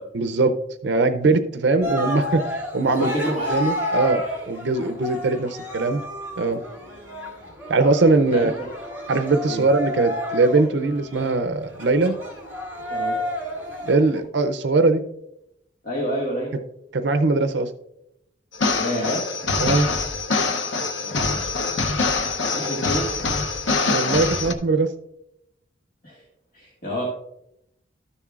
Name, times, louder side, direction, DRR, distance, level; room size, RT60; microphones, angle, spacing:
voice 1, 0.1-0.5 0.8-3.1 3.5-6.0 6.4-6.6 7.7-8.5 9.1-12.1 13.9-15.0 16.9-17.7 19.6-19.9 23.9-24.9, right 3 dB, 70° right, 8 dB, 0.5 m, -21 dB
Cheering, 1.8-14.2, left 1 dB, 10° right, 3.3 m, -31 dB
voice 2, 2.9-3.6 5.3-5.4 8.3-8.7 9.5-9.7 12.9-13.2 15.8-16.5 18.7-19.2 21.0-21.5 22.5-23.1 26.0-26.2 26.5-27.0, equal, 45° left, -4 dB, 1.8 m, -28 dB
sound 1, 18.5-24.5, left 3 dB, 80° left, 0.8 m, -24 dB
13.0 x 7.0 x 2.4 m, 0.80 s
head